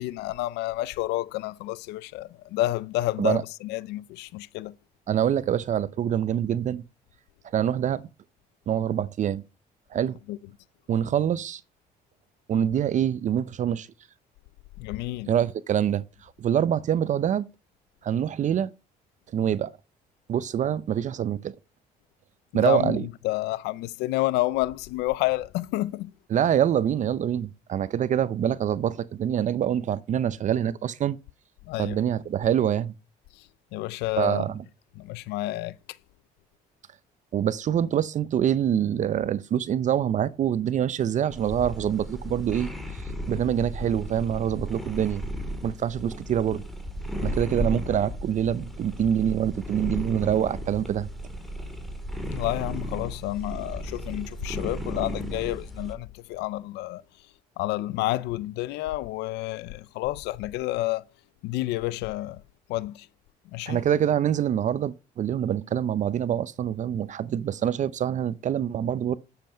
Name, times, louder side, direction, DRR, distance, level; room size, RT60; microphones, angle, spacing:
voice 1, 0.0-4.7 10.3-10.4 14.8-15.3 22.5-26.1 31.7-32.0 33.7-34.4 35.0-35.7 52.3-57.0 57.6-61.0 61.4-62.4 62.7-63.1 63.5-63.8, left 17 dB, 90° left, 0.5 m, -29 dB
voice 2, 5.1-6.8 7.5-8.0 8.7-9.4 9.9-10.1 10.9-11.6 12.5-13.9 15.3-17.5 18.0-18.7 19.3-19.7 20.3-21.5 22.5-23.1 26.3-31.2 31.8-32.9 34.2-34.6 37.3-43.0 43.3-45.2 45.6-46.6 47.2-51.1 63.7-69.2, right 9 dB, 45° right, 0.6 m, -25 dB
sound 1, 41.3-55.9, equal, ahead, 2.7 m, -35 dB
10.5 x 7.8 x 5.6 m
cardioid pair, 110°, 17 cm